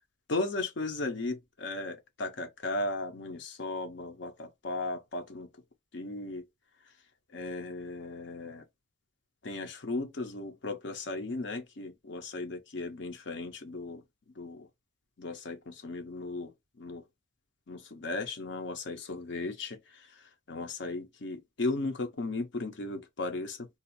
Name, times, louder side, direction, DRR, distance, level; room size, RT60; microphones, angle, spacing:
voice 1, 0.3-5.5 5.9-6.4 7.3-8.6 9.4-14.0 14.4-14.7 15.2-16.5 16.8-17.0 17.7-23.7, left 2 dB, 60° left, 0.6 m, -36 dB
2.6 x 2.4 x 4.0 m
head